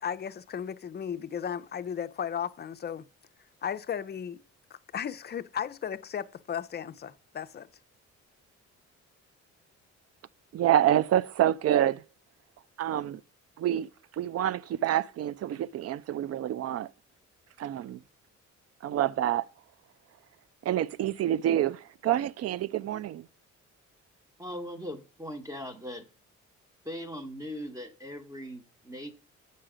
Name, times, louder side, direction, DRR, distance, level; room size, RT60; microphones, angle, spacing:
voice 1, 0.0-3.1 3.6-4.4 4.9-7.7, left 8 dB, 35° left, 0.5 m, -35 dB
voice 2, 10.5-12.0 12.8-13.2 13.6-16.9 17.6-18.0 18.8-19.5 20.6-23.3, right 11 dB, 55° right, 0.4 m, -27 dB
voice 3, 24.4-26.1 26.8-29.1, equal, 10° right, 1.1 m, -39 dB
7.5 x 5.6 x 5.0 m
cardioid pair, 90°, 30 cm